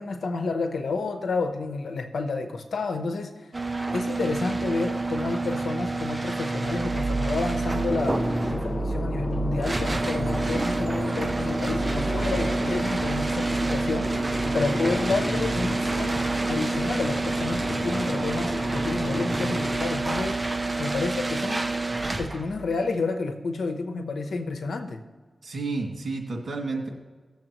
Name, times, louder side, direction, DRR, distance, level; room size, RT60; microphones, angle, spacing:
voice 1, 0.0-3.3 3.9-8.2 8.5-14.2 14.5-16.2 16.5-20.4 20.8-21.6 22.2-25.0, left 3 dB, 85° left, 6 dB, 0.9 m, -30 dB
sound 1, 3.5-22.6, right 3 dB, 30° right, 0.5 m, -28 dB
sound 2, 6.8-22.9, right 3 dB, 15° right, 2.3 m, -36 dB
sound 3, 7.9-19.8, left 1 dB, 30° left, 0.4 m, -33 dB
voice 2, 25.4-26.9, right 3 dB, 75° right, -1 dB, 2.2 m, -31 dB
17.0 x 7.2 x 3.0 m, 1.4 s
cardioid pair, 55°, 0 cm